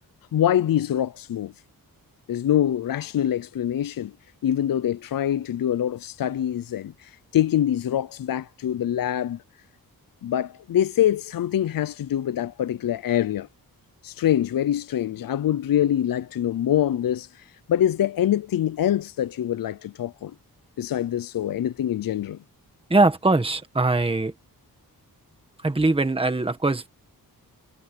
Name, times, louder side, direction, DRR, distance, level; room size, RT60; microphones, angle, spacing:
voice 1, 0.3-1.5 2.3-4.1 4.4-9.4 10.2-13.5 14.0-20.3 20.8-22.4, left 11 dB, 65° left, 0.6 m, -24 dB
voice 2, 22.9-24.3 25.6-26.9, right 2 dB, 15° right, 1.5 m, -21 dB
wide cardioid pair, 165°, 36 cm